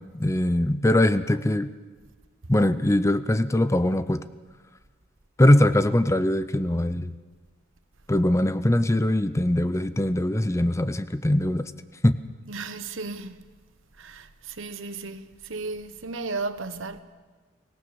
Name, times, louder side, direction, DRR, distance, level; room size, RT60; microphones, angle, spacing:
voice 1, 0.1-1.7 2.5-4.2 5.4-7.1 8.1-11.7 12.0-12.2, left 1 dB, 15° left, 0.6 m, -22 dB
voice 2, 12.5-13.4 14.0-17.0, right 3 dB, 75° right, 1.3 m, -34 dB
24.0 x 17.5 x 7.0 m
head